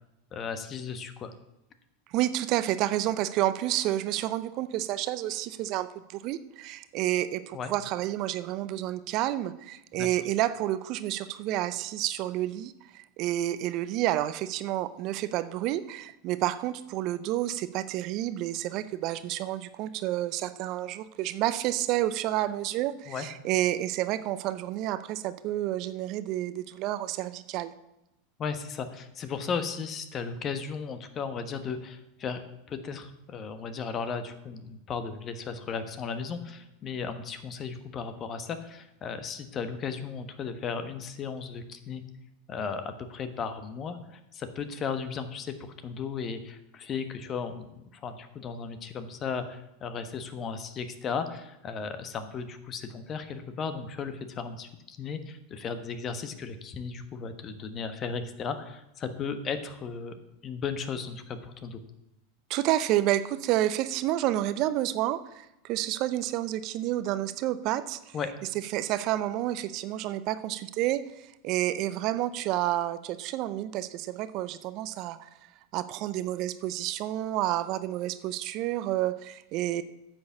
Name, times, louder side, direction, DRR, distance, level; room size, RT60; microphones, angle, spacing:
voice 1, 0.3-1.3 7.5-7.7 9.9-10.1 23.1-23.3 28.4-42.0 42.5-47.7 48.0-60.1 60.4-61.8 68.1-68.3, left 5 dB, 35° left, 9 dB, 1.3 m, -35 dB
voice 2, 2.1-27.7 62.5-68.1 68.7-75.3 75.7-79.8, right 14 dB, 50° right, 14 dB, 0.6 m, -30 dB
9.6 x 6.2 x 7.0 m, 0.89 s
hypercardioid pair, 90°, 0 cm